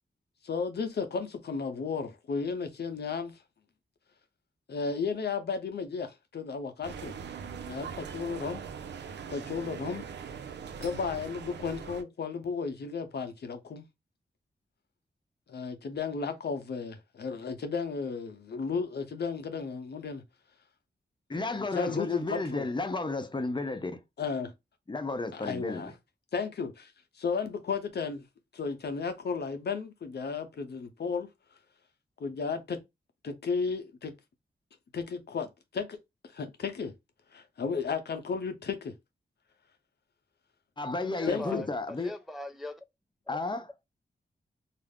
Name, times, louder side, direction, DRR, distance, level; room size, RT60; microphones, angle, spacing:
voice 1, 0.4-3.4 4.7-7.1 7.6-8.6 9.3-10.1 10.8-13.9 15.5-20.2 21.3-22.7 24.2-24.5 25.3-25.9 26.3-28.2 28.5-31.3 32.2-32.8 33.2-34.1 34.9-36.0 36.3-36.9 37.3-38.9 41.3-41.7, left 5 dB, 65° left, 0.6 m, -34 dB
sound 1, 6.8-12.0, right 7 dB, 75° right, 0.4 m, -41 dB
voice 2, 21.3-24.0 24.9-25.9 40.8-42.1 43.3-43.7, left 3 dB, 25° left, 0.7 m, -33 dB
voice 3, 41.0-42.8, left 2 dB, ahead, 0.3 m, -41 dB
2.3 x 2.0 x 3.4 m
cardioid pair, 45°, 18 cm